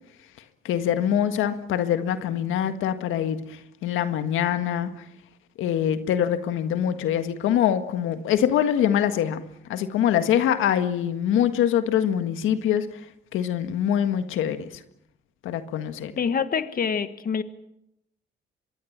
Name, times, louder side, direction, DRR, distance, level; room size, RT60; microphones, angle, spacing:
voice 1, 0.6-5.0 5.6-9.4 9.7-12.9 13.3-14.7 15.4-16.1, left 9 dB, 85° left, 9 dB, 1.7 m, -24 dB
voice 2, 16.2-17.4, left 6 dB, 45° left, 11 dB, 1.5 m, -26 dB
25.5 x 22.0 x 7.4 m, 0.79 s
cardioid pair, 90°, 20 cm